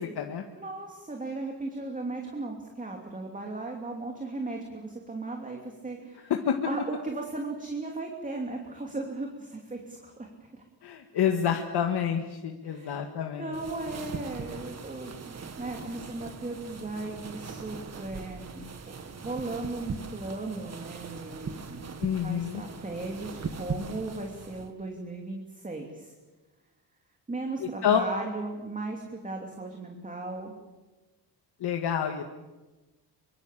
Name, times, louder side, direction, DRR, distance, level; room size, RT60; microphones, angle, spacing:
voice 1, 0.0-0.4 6.3-6.6 10.8-13.5 22.0-22.6 27.8-28.1 31.6-32.2, left 8 dB, 70° left, 3 dB, 1.9 m, -28 dB
voice 2, 0.5-6.3 6.6-10.6 12.6-12.9 13.4-18.9 19.2-21.8 22.2-26.1 27.3-30.5, right 2 dB, 20° right, 2 dB, 2.9 m, -37 dB
sound 1, 13.5-24.7, right 5 dB, 40° right, 1.9 m, -40 dB
25.0 x 24.5 x 7.6 m, 1.2 s
wide cardioid pair, 150°, 41 cm